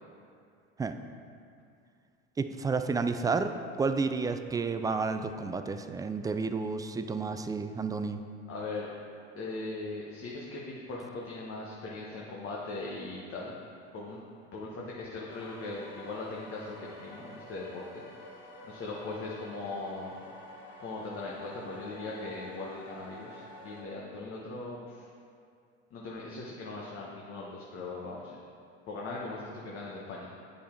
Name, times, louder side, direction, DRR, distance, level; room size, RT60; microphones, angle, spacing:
voice 1, 2.4-8.2, right 4 dB, 10° right, 8 dB, 0.3 m, -31 dB
voice 2, 8.5-8.9 9.3-13.6 13.9-14.2 14.5-18.0 18.6-20.2 20.8-25.1 25.9-28.4 28.9-30.3, left 3 dB, 40° left, -4 dB, 1.3 m, -39 dB
sound 1, 15.3-23.8, left 1 dB, 85° left, 1.4 m, -49 dB
8.5 x 5.5 x 4.5 m, 2.4 s
hypercardioid pair, 85°, 33 cm